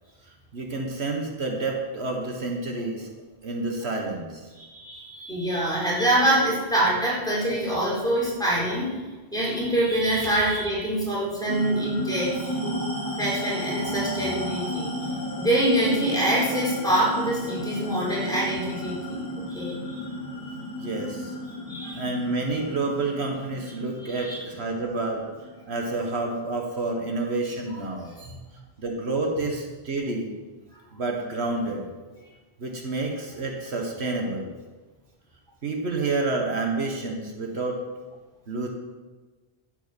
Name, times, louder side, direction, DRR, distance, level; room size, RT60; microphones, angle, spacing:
voice 1, 0.5-3.1 3.4-4.5 20.8-21.3 22.0-25.3 25.7-28.1 28.8-30.3 30.9-31.8 32.6-34.5 35.6-37.8 38.5-38.7, right 3 dB, 75° right, 2 dB, 1.7 m, -29 dB
voice 2, 4.6-8.9 9.3-12.4 12.6-12.8 13.2-14.9 15.4-20.0 21.7-22.0 24.1-24.3 28.2-28.3, right 1 dB, 5° left, -7 dB, 4.2 m, -25 dB
sound 1, 11.5-26.3, equal, 20° left, 2.6 m, -33 dB
12.0 x 8.6 x 5.3 m, 1.3 s
omnidirectional pair, 1.1 m